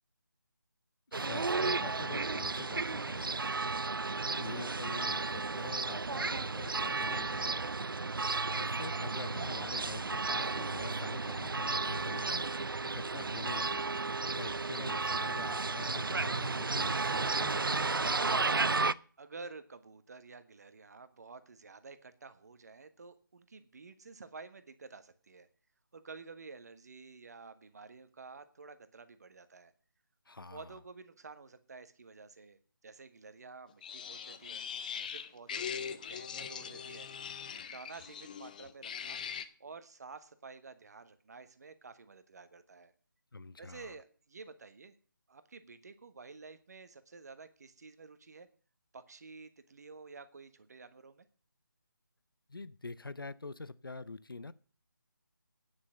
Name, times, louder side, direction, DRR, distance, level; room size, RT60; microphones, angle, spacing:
voice 1, 1.1-3.4 4.3-7.6 8.5-12.4 12.8-13.9 14.2-18.2 30.3-30.7 43.3-43.9 52.5-54.5, left 3 dB, 85° left, 17 dB, 0.7 m, -45 dB
sound 1, 1.1-18.9, right 3 dB, 85° right, 0.5 m, -33 dB
voice 2, 19.2-25.5 25.9-29.7 30.5-34.6 35.0-35.8 36.1-37.1 37.7-39.2 39.6-42.9 43.6-45.0 45.3-48.5 48.9-51.2, right 4 dB, 50° right, 11 dB, 1.3 m, -51 dB
sound 2, 33.8-39.4, left 7 dB, 25° left, 0.6 m, -41 dB
9.8 x 6.3 x 8.7 m, 0.41 s
figure-of-eight pair, 160°, 11 cm